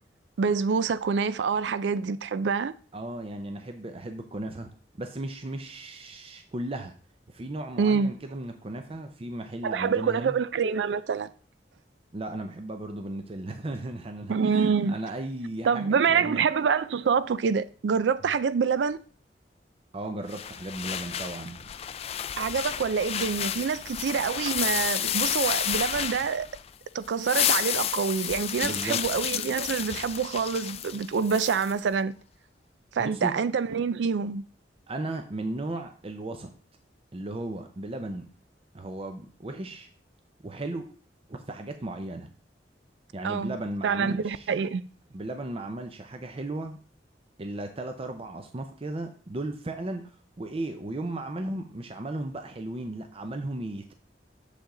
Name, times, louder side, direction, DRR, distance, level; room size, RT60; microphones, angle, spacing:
voice 1, 0.4-2.7 7.8-8.1 9.6-11.3 14.3-14.9 15.7-19.0 22.4-26.5 26.9-32.1 32.9-34.4 43.2-43.5 43.8-44.8, right 6 dB, 85° right, 0.4 m, -26 dB
voice 2, 2.9-4.7 5.0-6.9 7.3-10.4 12.1-16.5 19.9-21.7 28.6-29.0 33.0-33.3 34.9-36.5 37.1-38.3 38.7-39.9 40.4-40.9 41.3-42.3 43.1-44.5 45.1-46.8 47.4-50.1 50.4-53.9, right 2 dB, 35° right, 0.6 m, -35 dB
sound 1, 20.3-26.7 27.0-31.7, left 10 dB, 35° left, 0.3 m, -31 dB
6.9 x 5.0 x 3.8 m
head